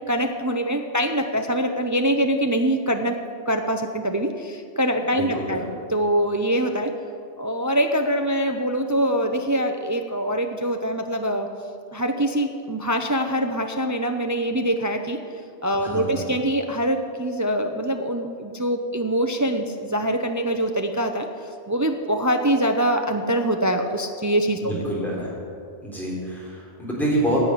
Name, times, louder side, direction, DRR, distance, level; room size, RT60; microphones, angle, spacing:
voice 1, 0.1-3.2 3.5-6.9 7.4-11.5 11.9-15.2 15.6-21.3 21.7-24.8, right 1 dB, 20° right, 5 dB, 0.5 m, -24 dB
voice 2, 5.2-5.6 15.8-16.2 24.6-25.3 25.8-27.4, right 1 dB, ahead, -6 dB, 3.8 m, -27 dB
11.0 x 7.9 x 9.9 m, 2.4 s
omnidirectional pair, 1.2 m